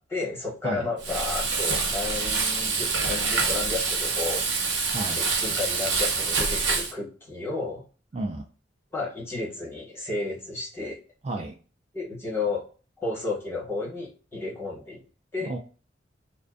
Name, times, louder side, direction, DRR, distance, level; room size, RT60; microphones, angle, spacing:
voice 1, 0.1-4.7 5.1-7.8 8.9-11.0 11.9-12.6 13.0-15.0 15.3-15.5, left 3 dB, 15° left, -4 dB, 1.1 m, -32 dB
Frying (food), 1.0-6.9, right 4 dB, 80° right, 0.8 m, -26 dB
voice 2, 4.9-5.2 8.1-8.4 11.2-11.5 15.5-15.6, right 2 dB, 35° right, 1 dB, 0.3 m, -31 dB
2.5 x 2.1 x 2.4 m, 0.37 s
head